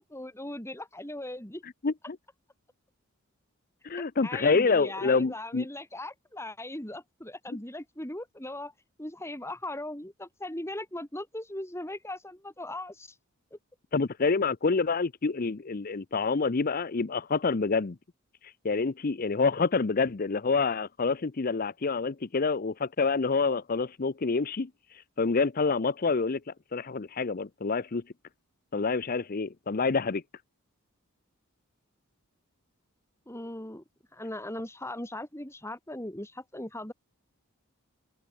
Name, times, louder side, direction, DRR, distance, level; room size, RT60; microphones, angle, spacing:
voice 1, 0.0-1.6 4.2-8.7 9.0-13.2 13.5-13.6 33.3-33.8 34.1-36.9, left 1 dB, 10° left, 3.5 m, -39 dB
voice 2, 1.6-2.2 3.8-5.7 13.9-18.0 18.6-24.7 25.2-26.4 26.7-28.0 28.7-30.2, left 4 dB, 40° left, 0.6 m, -27 dB
head